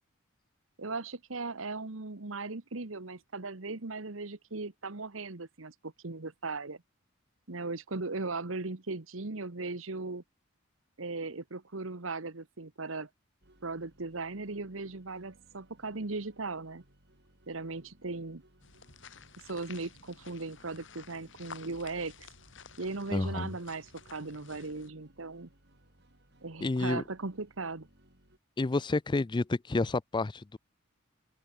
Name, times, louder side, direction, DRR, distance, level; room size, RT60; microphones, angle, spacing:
voice 1, 0.8-6.8 7.5-10.2 11.0-13.1 13.6-16.8 17.5-18.4 19.4-22.3 22.8-25.5 26.4-27.9, right 3 dB, 75° right, 1.4 m, -38 dB
sound 1, 13.4-28.4, right 1 dB, 55° right, 6.7 m, -63 dB
sound 2, 18.6-24.9, left 6 dB, 65° left, 4.5 m, -53 dB
voice 2, 23.1-23.5 26.6-27.0 28.6-30.6, left 3 dB, 20° left, 0.4 m, -30 dB
open air
head